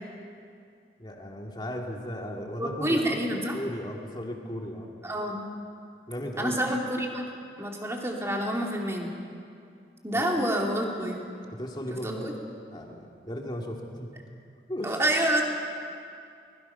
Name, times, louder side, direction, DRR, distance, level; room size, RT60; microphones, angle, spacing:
voice 1, 1.0-3.2 3.5-4.9 6.1-6.6 10.1-10.3 11.5-12.4 12.7-14.1 14.7-15.0, equal, 25° left, 0 dB, 2.4 m, -36 dB
voice 2, 2.6-3.6 5.0-5.4 6.4-7.2 7.6-9.1 10.0-11.2 11.9-12.3 14.8-15.4, right 1 dB, 15° right, 0 dB, 2.6 m, -28 dB
24.0 x 21.5 x 5.7 m, 2.4 s
head